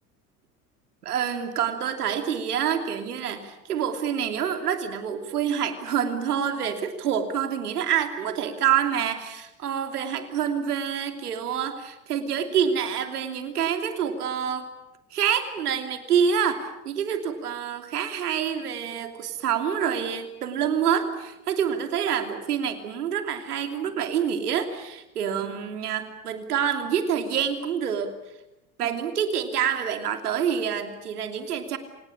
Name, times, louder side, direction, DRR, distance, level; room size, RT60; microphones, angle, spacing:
voice 1, 1.0-14.7 15.1-28.2 28.8-31.8, right 8 dB, 85° right, 7 dB, 2.9 m, -27 dB
27.0 x 19.0 x 8.6 m, 0.93 s
hypercardioid pair, 85°, 45 cm